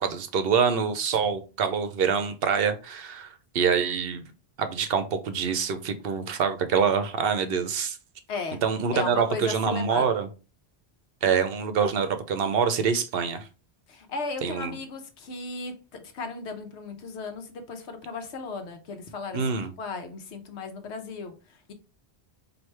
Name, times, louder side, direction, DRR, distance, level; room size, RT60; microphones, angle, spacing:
voice 1, 0.0-4.2 4.6-8.0 8.6-10.3 11.2-13.5 14.4-14.8 19.3-19.7, right 6 dB, 65° right, 0.8 m, -25 dB
voice 2, 8.3-8.6 8.9-10.1 13.9-15.7 16.1-21.7, left 4 dB, 80° left, 1.1 m, -36 dB
4.6 x 2.7 x 3.2 m
omnidirectional pair, 1.1 m